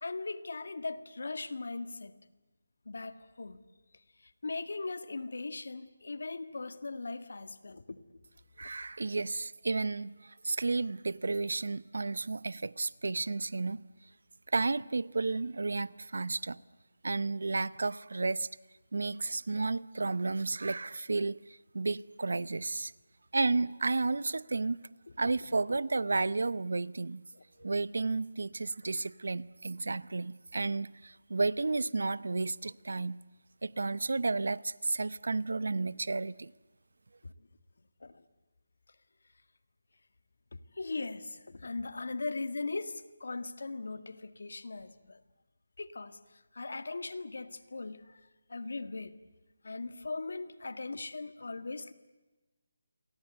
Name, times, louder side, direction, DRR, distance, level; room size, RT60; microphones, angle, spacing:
voice 1, 0.0-2.1 2.9-3.6 4.2-8.0 8.6-8.7 25.1-25.2 25.7-25.8 27.6-27.7 37.2-37.3 38.0-38.2 40.5-45.2 45.8-48.2 48.5-49.2 49.6-51.9, left 3 dB, 70° left, 1.9 m, -39 dB
voice 2, 8.6-13.8 14.5-16.6 17.0-18.5 18.9-22.9 23.3-24.9 25.2-27.2 27.6-33.2 33.6-36.5, right 3 dB, 75° right, 0.8 m, -32 dB
28.0 x 23.5 x 8.1 m
figure-of-eight pair, 170°, 0 cm